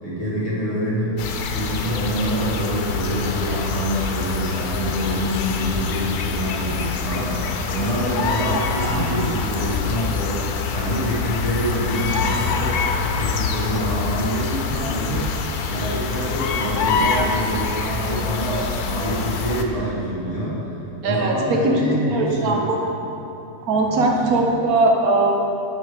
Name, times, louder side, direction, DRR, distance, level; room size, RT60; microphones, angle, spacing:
voice 1, 0.0-1.2 1.5-22.7 23.6-24.4, right 1 dB, 25° left, -8 dB, 1.9 m, -26 dB
sound 1, 1.2-19.6, left 5 dB, 90° left, 1.1 m, -25 dB
voice 2, 8.8-9.1 21.0-21.8 22.1-22.8 23.7-25.3, right 2 dB, 75° right, 0 dB, 1.3 m, -20 dB
6.1 x 5.6 x 5.1 m, 2.9 s
omnidirectional pair, 1.6 m